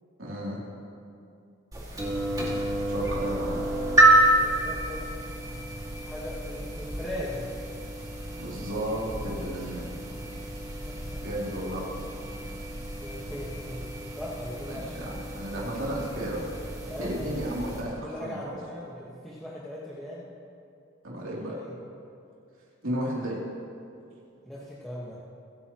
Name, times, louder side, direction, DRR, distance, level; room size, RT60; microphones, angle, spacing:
voice 1, 0.2-0.6 2.9-3.7 8.4-9.9 11.2-11.9 14.7-16.5 17.0-18.6 21.0-21.6 22.8-23.4, right 1 dB, 75° right, -5 dB, 3.0 m, -33 dB
sound 1, 1.7-17.8, right 1 dB, 20° right, 2.1 m, -29 dB
voice 2, 3.6-5.0 6.0-7.5 10.3-10.4 10.9-11.2 13.0-14.9 16.9-17.4 18.0-20.3 21.3-21.7 24.4-25.2, left 1 dB, ahead, -9 dB, 1.4 m, -39 dB
25.5 x 9.3 x 3.0 m, 2.5 s
head